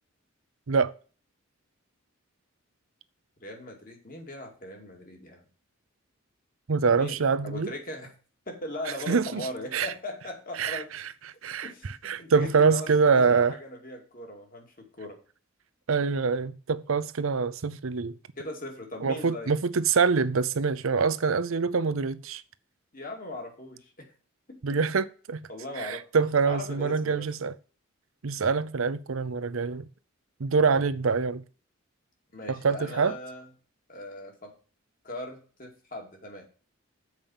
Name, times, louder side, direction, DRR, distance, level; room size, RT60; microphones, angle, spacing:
voice 1, 3.4-5.4 6.9-7.2 7.4-8.1 8.5-11.0 11.6-15.2 18.4-19.6 22.9-24.1 24.5-24.8 25.5-26.0 26.4-27.3 30.7-30.9 32.3-33.5 33.9-34.5 35.0-36.5, left 1 dB, 40° left, 2.4 m, -39 dB
voice 2, 6.7-7.7 9.1-9.5 9.7-9.9 10.6-11.0 11.4-13.5 15.9-18.2 19.0-22.4 24.6-25.5 25.8-27.6 28.2-29.9 30.4-31.4 32.5-33.2, right 5 dB, 75° right, 0.6 m, -25 dB
7.4 x 5.2 x 7.2 m
head